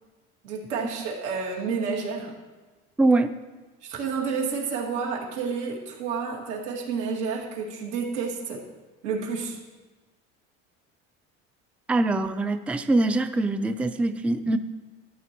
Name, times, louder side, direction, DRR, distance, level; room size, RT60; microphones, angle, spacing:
voice 1, 0.4-2.4 3.8-8.7 9.0-9.6, right 5 dB, 85° right, -2 dB, 2.3 m, -30 dB
voice 2, 3.0-3.3 11.9-14.6, right 2 dB, 5° right, 10 dB, 0.4 m, -23 dB
13.5 x 7.9 x 3.0 m, 1.3 s
supercardioid pair, 85°, 34 cm